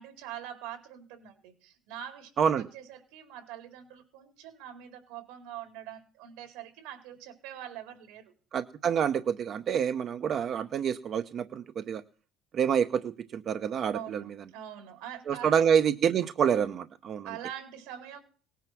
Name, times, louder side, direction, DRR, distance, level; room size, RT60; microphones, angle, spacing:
voice 1, 0.0-2.3 2.6-8.3 13.9-15.6 17.2-18.2, right 10 dB, 80° right, 5 dB, 4.6 m, -44 dB
voice 2, 8.5-12.0 12.5-14.2 15.3-17.3, right 8 dB, 35° right, 9 dB, 0.7 m, -27 dB
19.0 x 9.3 x 6.0 m, 0.42 s
cardioid pair, 165°, 0 cm